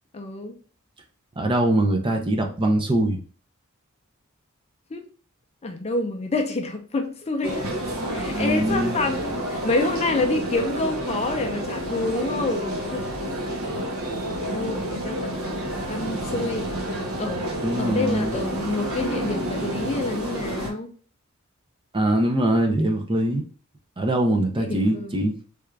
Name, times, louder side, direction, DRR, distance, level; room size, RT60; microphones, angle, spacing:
voice 1, 0.1-0.5 4.9-5.0 5.6-7.7 8.1-13.0 14.3-16.7 17.2-17.5 17.8-20.9 24.6-25.1, left 2 dB, 30° left, 0.5 m, -28 dB
voice 2, 1.4-3.2 8.4-9.0 17.6-18.4 21.9-23.4 24.0-25.4, right 1 dB, 25° right, 0.5 m, -22 dB
sound 1, 7.4-20.7, equal, 75° right, 0.9 m, -29 dB
3.4 x 2.4 x 3.2 m
head